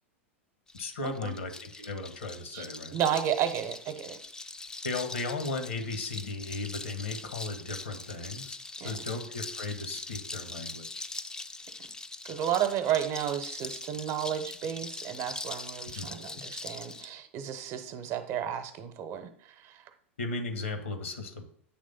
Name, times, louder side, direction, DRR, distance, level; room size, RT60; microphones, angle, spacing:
voice 1, 0.7-3.0 4.8-8.6 8.8-11.1 15.8-16.4 20.2-21.4, left 3 dB, 75° left, 7 dB, 1.3 m, -36 dB
sound 1, 0.7-17.1, left 3 dB, 10° left, 0.5 m, -42 dB
voice 2, 2.9-4.2 8.8-8.9 12.2-19.3 19.6-19.8, right 10 dB, 40° right, 9 dB, 0.9 m, -32 dB
8.5 x 3.4 x 5.4 m, 0.62 s
figure-of-eight pair, 90°, 7 cm